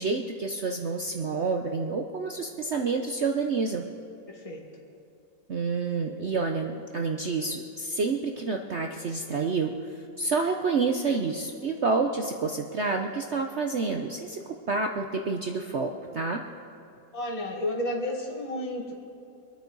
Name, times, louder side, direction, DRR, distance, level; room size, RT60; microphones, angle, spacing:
voice 1, 0.0-3.8 5.5-16.4, right 4 dB, 65° right, 3 dB, 0.7 m, -29 dB
voice 2, 4.3-4.6 17.1-18.9, left 1 dB, 20° left, 0 dB, 1.8 m, -32 dB
25.0 x 9.4 x 4.0 m, 2.7 s
omnidirectional pair, 2.1 m